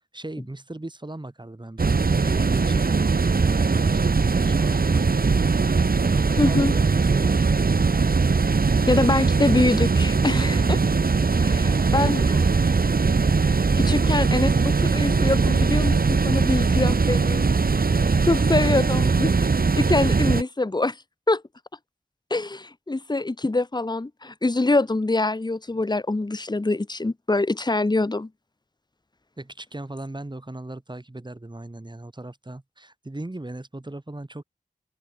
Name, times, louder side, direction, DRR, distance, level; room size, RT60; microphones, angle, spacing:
voice 1, 0.1-7.5 11.6-12.8 29.4-34.4, right 2 dB, 30° right, 5.3 m, -38 dB
sound 1, 1.8-20.4, right 4 dB, 75° right, 1.5 m, -20 dB
voice 2, 6.4-6.7 8.9-10.8 11.4-12.2 13.8-17.5 18.3-19.3 19.8-21.0 21.3-21.4 22.3-28.3, left 2 dB, 30° left, 1.0 m, -24 dB
open air
wide cardioid pair, 60°, 15 cm